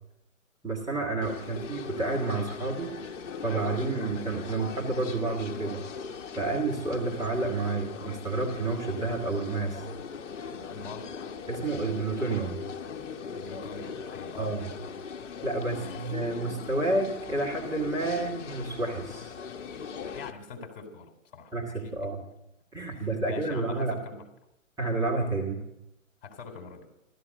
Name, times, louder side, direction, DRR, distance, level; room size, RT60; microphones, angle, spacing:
voice 1, 0.6-3.1 3.4-5.9 6.4-9.8 11.5-12.6 14.4-14.7 15.4-19.3 21.5-22.2 22.7-24.0 24.8-25.6, right 3 dB, 10° right, -4 dB, 1.8 m, -30 dB
sound 1, 1.2-20.3, left 6 dB, 60° left, 1.2 m, -40 dB
voice 2, 10.5-11.1 13.4-14.5 15.7-16.2 20.1-22.1 22.9-24.2 26.2-26.9, left 4 dB, 40° left, 5 dB, 3.9 m, -44 dB
15.5 x 13.5 x 6.5 m, 0.86 s
hypercardioid pair, 140°, 41 cm